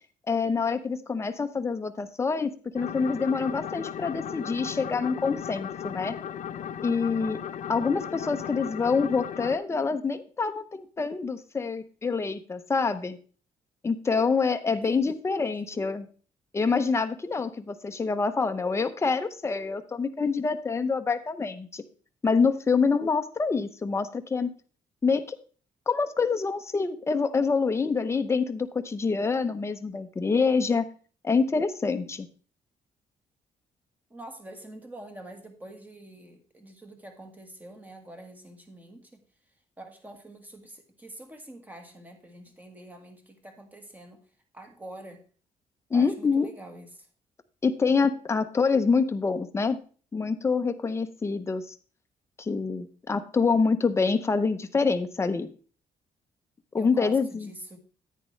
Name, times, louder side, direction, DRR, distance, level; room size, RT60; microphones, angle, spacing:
voice 1, 0.3-6.1 6.8-7.4 7.7-13.2 13.8-16.1 16.5-21.8 22.2-24.5 25.0-25.4 25.9-30.9 31.2-32.3 45.9-46.5 47.6-49.8 50.1-51.8 52.4-55.5 56.7-57.5, left 4 dB, 20° left, 8 dB, 0.7 m, -26 dB
sound 1, 2.7-9.6, left 9 dB, 60° left, 0.6 m, -36 dB
voice 2, 14.7-15.0 15.6-15.9 34.1-39.2 39.8-44.2 44.5-45.2 45.9-47.1 56.8-57.8, right 1 dB, 10° right, 5 dB, 1.6 m, -46 dB
10.0 x 9.2 x 3.2 m, 0.39 s
cardioid pair, 140°, 14 cm